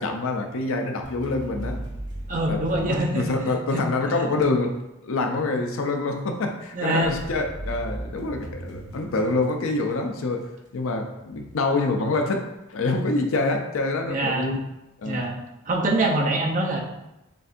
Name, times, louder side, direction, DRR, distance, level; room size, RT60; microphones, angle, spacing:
voice 1, 0.0-1.8 2.5-4.8 5.0-14.6 15.0-15.3, left 3 dB, 70° left, 4 dB, 0.5 m, -26 dB
sound 1, 1.0-4.0 7.0-10.5, right 1 dB, 20° right, 1.2 m, -37 dB
voice 2, 2.3-3.3 3.7-3.8 6.7-7.1 14.1-14.5 15.0-15.4 15.7-16.8, right 2 dB, 40° right, 0 dB, 0.7 m, -24 dB
6.8 x 2.6 x 2.5 m, 0.92 s
head